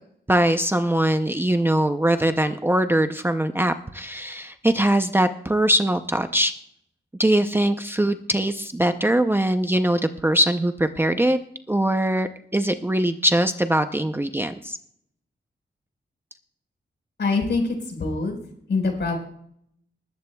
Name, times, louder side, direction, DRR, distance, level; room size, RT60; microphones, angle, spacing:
voice 1, 0.3-6.5 7.2-11.4 11.7-14.8, right 1 dB, 10° right, 8 dB, 0.6 m, -22 dB
voice 2, 17.2-18.4 18.7-19.1, left 3 dB, 65° left, 2 dB, 4.5 m, -24 dB
20.0 x 14.0 x 2.3 m, 0.68 s
wide cardioid pair, 145°, 19 cm